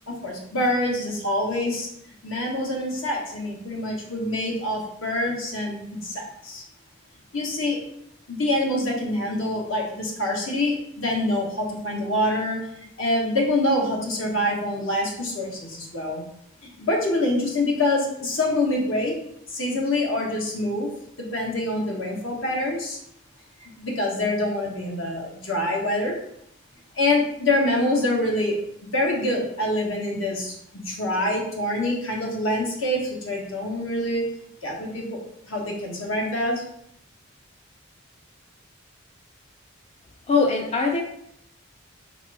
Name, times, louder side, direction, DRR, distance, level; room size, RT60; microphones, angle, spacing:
voice 1, 0.1-1.9 2.2-6.6 7.3-7.8 8.3-16.2 16.6-19.1 19.5-20.9 21.2-23.0 23.6-26.2 26.9-28.6 28.9-34.2 34.6-35.2 35.4-36.6, left 1 dB, 75° left, -1 dB, 1.3 m, -25 dB
voice 2, 40.3-41.0, left 4 dB, 30° left, 2 dB, 0.4 m, -21 dB
5.0 x 2.9 x 3.3 m, 0.73 s
head